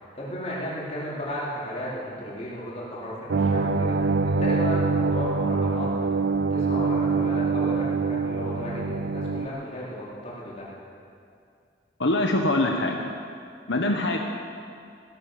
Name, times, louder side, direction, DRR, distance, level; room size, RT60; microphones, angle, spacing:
voice 1, 0.1-5.9 6.3-10.7, equal, 35° left, -7 dB, 4.5 m, -34 dB
sound 1, 3.3-9.5, right 4 dB, 60° right, 0.4 m, -24 dB
voice 2, 12.0-13.0 13.7-14.2, left 2 dB, 80° left, 2 dB, 1.2 m, -23 dB
16.5 x 12.0 x 7.0 m, 2.3 s
head